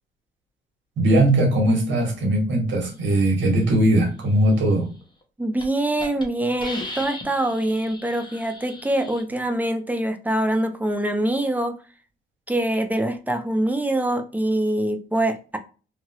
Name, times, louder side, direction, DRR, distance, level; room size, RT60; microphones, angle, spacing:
voice 1, 1.0-4.9, right 1 dB, 70° right, 1.5 m, -19 dB
Hiss, 5.0-5.2 5.6-5.7 6.0-6.2 6.6-9.2, left 1 dB, 20° left, 1.0 m, -37 dB
voice 2, 5.4-11.8 12.5-15.6, right 1 dB, 10° right, 0.6 m, -24 dB
2.9 x 2.8 x 2.9 m
cardioid pair, 90°, 20 cm